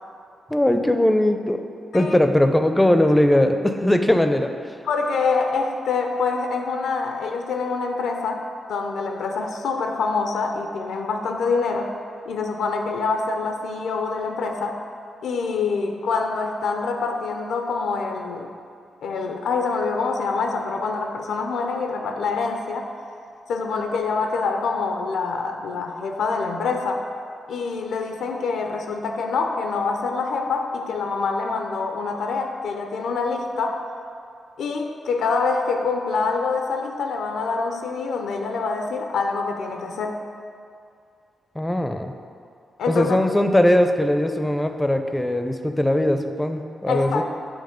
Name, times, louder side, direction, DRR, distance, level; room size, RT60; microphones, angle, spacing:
voice 1, 0.5-1.6 1.9-4.5 41.6-42.1 42.9-47.2, left 1 dB, 10° left, 7 dB, 0.4 m, -20 dB
voice 2, 4.8-11.9 12.3-14.8 15.2-18.5 19.0-22.9 23.5-27.1 27.5-33.8 34.6-40.2 42.8-43.2 46.9-47.2, left 4 dB, 90° left, 4 dB, 0.4 m, -25 dB
7.9 x 3.0 x 5.0 m, 2.4 s
cardioid pair, 75°, 0 cm